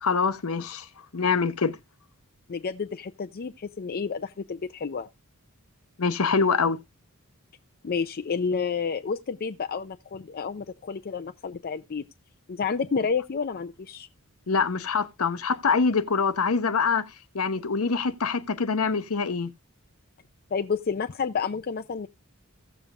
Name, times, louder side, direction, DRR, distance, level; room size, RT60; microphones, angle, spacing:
voice 1, 0.0-0.9 1.1-1.8 6.0-6.8 14.5-17.1 17.3-19.5, left 5 dB, 75° left, 0.8 m, -24 dB
voice 2, 2.5-5.1 7.8-12.0 12.5-14.1 20.5-22.1, left 5 dB, 45° left, 0.5 m, -30 dB
16.5 x 7.1 x 2.4 m
head